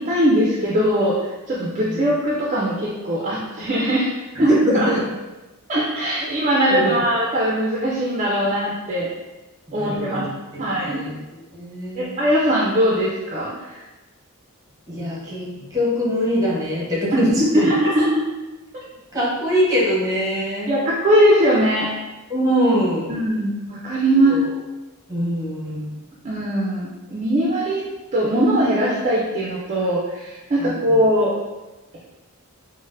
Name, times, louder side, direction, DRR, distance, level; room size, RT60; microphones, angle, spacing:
voice 1, 0.0-4.1 4.4-4.9 5.7-9.1 9.7-10.3 10.6-11.0 12.0-13.8 17.4-18.2 18.7-18.8 20.7-21.9 23.1-24.4 26.2-27.8 28.1-31.3, equal, 35° right, -4 dB, 0.4 m, -20 dB
voice 2, 4.4-5.0 6.7-6.9 9.7-10.3 10.7-11.1 11.5-12.1 14.9-17.7 19.1-20.7 22.3-23.1 24.1-24.4 25.1-26.0 30.6-30.9, equal, 15° right, -6 dB, 0.9 m, -23 dB
4.0 x 2.0 x 2.5 m, 1.1 s
head